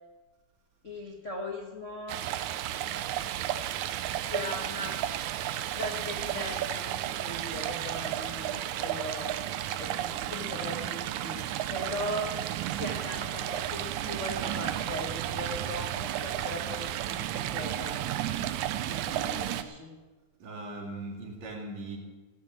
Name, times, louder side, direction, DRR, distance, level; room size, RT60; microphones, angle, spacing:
voice 1, 0.8-2.2 4.2-4.9 5.8-9.4 9.8-11.4 11.7-12.3 12.7-18.0 18.8-19.9, left 1 dB, 70° left, 0 dB, 0.7 m, -38 dB
Stream, 2.1-19.6, right 12 dB, 80° right, 1.8 m, -33 dB
voice 2, 20.4-22.0, right 2 dB, 50° right, 1 dB, 3.4 m, -39 dB
16.0 x 7.4 x 9.0 m, 1.2 s
omnidirectional pair, 4.1 m